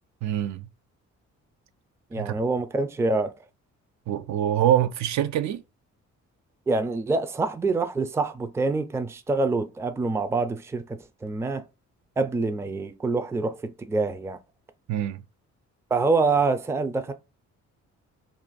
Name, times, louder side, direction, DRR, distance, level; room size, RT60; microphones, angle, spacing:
voice 1, 0.2-0.7 2.2-2.3 4.1-5.6 14.9-15.2, right 11 dB, 65° right, 0.5 m, -25 dB
voice 2, 2.1-3.3 6.7-11.6 12.2-14.4 15.9-17.1, right 3 dB, 10° right, 0.4 m, -26 dB
2.5 x 2.5 x 3.9 m
cardioid pair, 90°, 30 cm